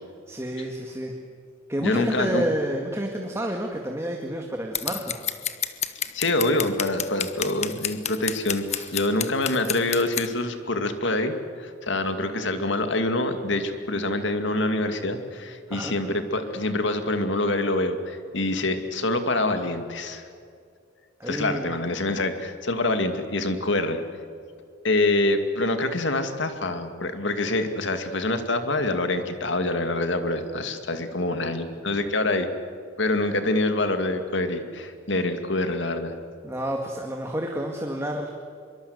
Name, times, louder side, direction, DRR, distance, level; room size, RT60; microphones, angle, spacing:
voice 1, 0.3-1.2 1.7-5.1 8.7-8.9 15.7-15.9 21.2-21.7 36.4-38.3, right 1 dB, 15° right, 2 dB, 2.1 m, -29 dB
voice 2, 1.8-2.5 6.1-20.2 21.3-24.0 24.8-32.5 33.0-36.1, left 2 dB, 65° left, 8 dB, 2.4 m, -26 dB
Scissors, 4.8-10.3, left 9 dB, 35° left, 1.2 m, -29 dB
24.5 x 23.5 x 8.1 m, 2.3 s
head